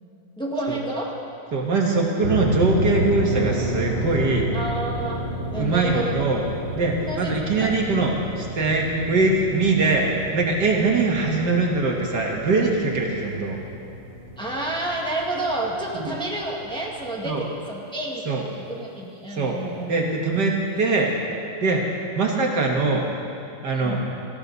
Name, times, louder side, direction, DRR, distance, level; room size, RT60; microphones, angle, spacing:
voice 1, 0.4-1.1 4.5-5.2 5.5-6.3 7.1-7.8 14.4-18.2 18.5-19.9 23.7-24.0, right 1 dB, 5° left, -3 dB, 1.8 m, -30 dB
voice 2, 1.5-4.5 5.6-6.4 6.8-13.6 16.0-16.1 17.2-17.4 18.3-18.5 19.3-19.6 19.9-21.1 21.6-23.1 23.6-24.0, right 3 dB, 65° right, 0 dB, 2.1 m, -22 dB
sound 1, 2.2-17.4, equal, 30° right, 1.7 m, -31 dB
18.5 x 14.5 x 4.1 m, 2.5 s
omnidirectional pair, 2.0 m